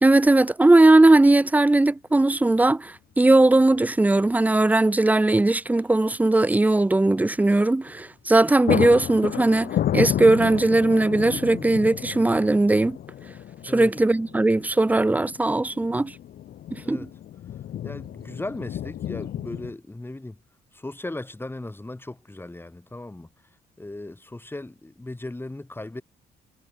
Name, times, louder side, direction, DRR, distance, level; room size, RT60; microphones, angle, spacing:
voice 1, 0.0-13.0 13.7-16.1 16.9-17.1, right 2 dB, 10° right, 0.5 m, -19 dB
sound 1, 1.7-1.8 3.4-3.8 4.1-4.2 7.9-8.1 8.3-19.7, left 11 dB, 65° left, 0.9 m, -31 dB
voice 2, 16.8-17.2 17.8-20.4 20.7-23.3 23.8-26.0, left 2 dB, 15° left, 6.5 m, -37 dB
cardioid pair, 105°, 17 cm